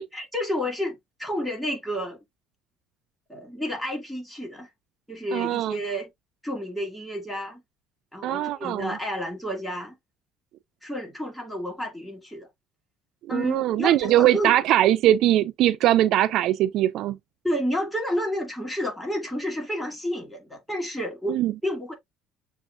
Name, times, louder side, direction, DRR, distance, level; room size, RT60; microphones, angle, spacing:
voice 1, 0.1-2.2 3.3-4.7 5.1-6.1 6.4-7.6 8.1-10.0 10.8-12.5 13.3-14.6 17.4-21.9, equal, 5° left, 2.0 m, -30 dB
voice 2, 5.3-5.8 8.2-9.0 13.3-17.2 21.3-21.5, right 13 dB, 60° right, 0.3 m, -21 dB
6.9 x 2.4 x 2.4 m
cardioid pair, 125°, 0 cm